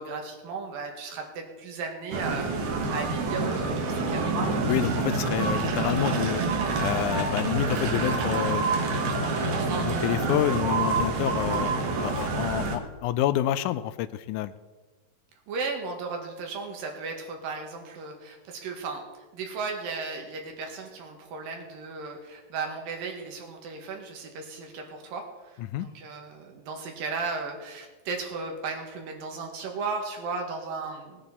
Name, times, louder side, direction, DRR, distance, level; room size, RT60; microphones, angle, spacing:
voice 1, 0.0-4.3 15.5-31.2, right 4 dB, 85° right, 2 dB, 3.5 m, -35 dB
sound 1, 2.1-12.8, right 3 dB, 60° right, 2.6 m, -27 dB
voice 2, 4.7-6.4 6.8-8.6 9.2-11.7 12.0-14.5 25.6-25.9, left 12 dB, 80° left, 14 dB, 1.8 m, -28 dB
19.5 x 9.1 x 4.2 m, 1.3 s
omnidirectional pair, 3.9 m